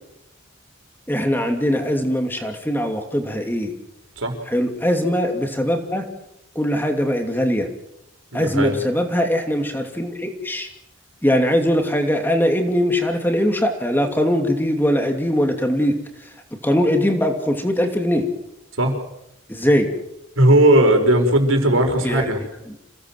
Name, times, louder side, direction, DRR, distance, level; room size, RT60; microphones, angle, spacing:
voice 1, 1.1-3.7 4.5-6.0 6.5-7.7 8.3-10.7 11.2-16.0 16.6-18.3 19.5-19.9 22.0-22.3, equal, 10° left, 4 dB, 2.8 m, -21 dB
voice 2, 8.3-8.8 18.8-19.0 20.4-22.4, right 1 dB, 80° right, 4 dB, 5.5 m, -17 dB
28.0 x 18.0 x 7.7 m, 0.83 s
head